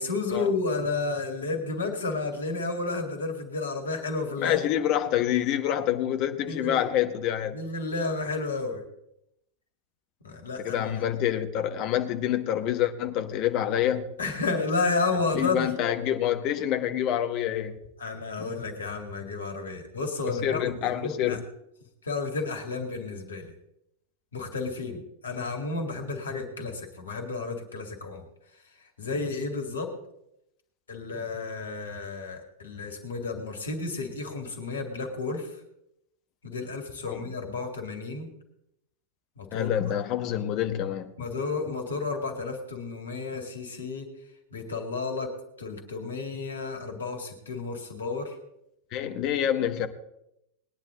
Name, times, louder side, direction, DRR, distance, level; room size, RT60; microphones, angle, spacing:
voice 1, 0.0-4.7 6.5-6.8 7.5-8.8 10.2-10.9 14.2-15.7 18.0-21.4 22.0-23.5 24.3-28.2 29.0-29.9 30.9-35.5 36.4-38.3 39.4-39.7 41.2-44.1 44.5-45.3 45.6-48.4, left 3 dB, 70° left, 2.4 m, -31 dB
voice 2, 4.4-7.6 10.6-14.1 15.3-17.8 18.4-18.5 20.3-21.4 37.1-37.3 39.5-41.1 48.9-49.9, left 11 dB, 40° left, 1.2 m, -27 dB
20.0 x 10.5 x 3.9 m
figure-of-eight pair, 90°, 0 cm